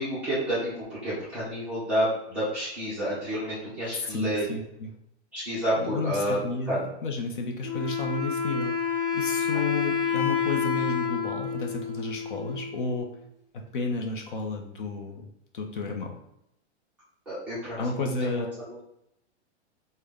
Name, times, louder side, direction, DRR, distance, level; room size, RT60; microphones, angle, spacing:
voice 1, 0.0-4.5 5.3-6.8 9.5-9.6 17.3-18.7, equal, 5° right, -13 dB, 0.5 m, -30 dB
voice 2, 3.9-4.9 5.8-8.8 9.1-13.1 13.7-15.3 15.5-16.2 17.8-18.5, left 3 dB, 50° left, 2 dB, 0.5 m, -32 dB
Wind instrument woodwind instrument, 7.6-13.1, left 7 dB, 75° left, 1.0 m, -29 dB
3.4 x 2.1 x 3.4 m, 0.80 s
hypercardioid pair, 170°, 35 cm